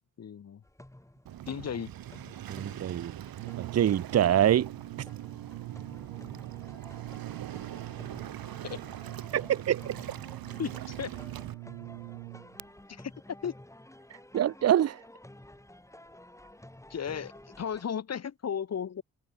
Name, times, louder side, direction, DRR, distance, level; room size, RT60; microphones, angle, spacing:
voice 1, 0.2-0.6 1.5-1.9 8.6-8.8 10.6-11.2 12.9-13.5 16.9-19.0, left 7 dB, 45° left, 1.0 m, -35 dB
sound 1, 0.6-17.8, left 1 dB, 10° left, 2.5 m, -52 dB
Waves surf, 1.3-11.5, right 12 dB, 65° right, 1.4 m, -42 dB
voice 2, 2.5-3.2 3.6-4.7 9.3-10.0 14.3-15.0, right 11 dB, 40° right, 0.6 m, -25 dB
Brass instrument, 3.3-12.7, right 28 dB, 85° right, 0.5 m, -44 dB
hypercardioid pair, 45°, 38 cm